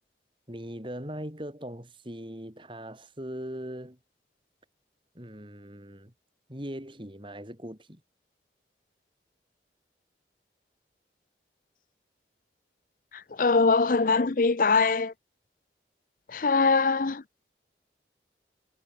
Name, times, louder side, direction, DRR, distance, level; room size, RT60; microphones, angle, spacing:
voice 1, 0.5-4.0 5.1-6.1 6.5-8.0, equal, 30° right, 5.0 m, -40 dB
voice 2, 13.4-15.1 16.3-17.2, left 4 dB, 50° left, 0.6 m, -22 dB
head